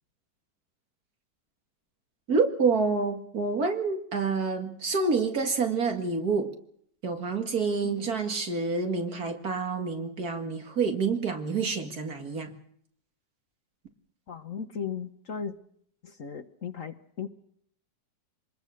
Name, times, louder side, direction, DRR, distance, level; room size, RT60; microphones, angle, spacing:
voice 1, 2.3-6.5 7.0-12.5, right 4 dB, 55° right, 5 dB, 2.5 m, -28 dB
voice 2, 14.3-15.5 16.0-17.3, left 6 dB, 50° left, 9 dB, 1.3 m, -36 dB
26.0 x 20.5 x 6.5 m, 0.66 s
omnidirectional pair, 2.0 m